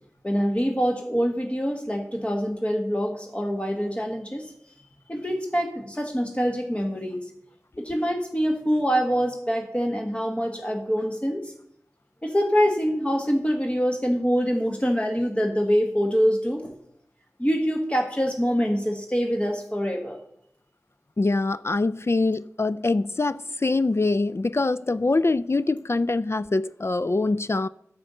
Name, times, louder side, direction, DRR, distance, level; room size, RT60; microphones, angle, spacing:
voice 1, 0.2-4.5 5.1-7.2 7.8-11.5 12.2-16.8 17.4-20.2, equal, 20° left, 1.3 m, -25 dB
voice 2, 21.2-27.7, left 3 dB, 45° left, 0.3 m, -24 dB
9.6 x 7.6 x 6.7 m
wide cardioid pair, 45°, 6 cm